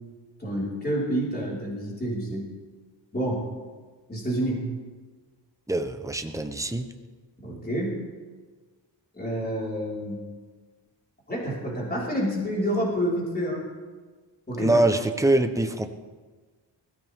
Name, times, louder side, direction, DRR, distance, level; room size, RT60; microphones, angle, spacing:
voice 1, 0.4-2.4 3.1-3.5 4.1-4.7 7.4-8.0 9.1-10.2 11.3-13.6 14.5-14.8, equal, 20° left, -5 dB, 4.9 m, -28 dB
voice 2, 5.7-6.9 14.6-15.9, right 2 dB, 5° right, 7 dB, 0.9 m, -23 dB
20.5 x 16.5 x 3.7 m, 1.4 s
wide cardioid pair, 130°, 45 cm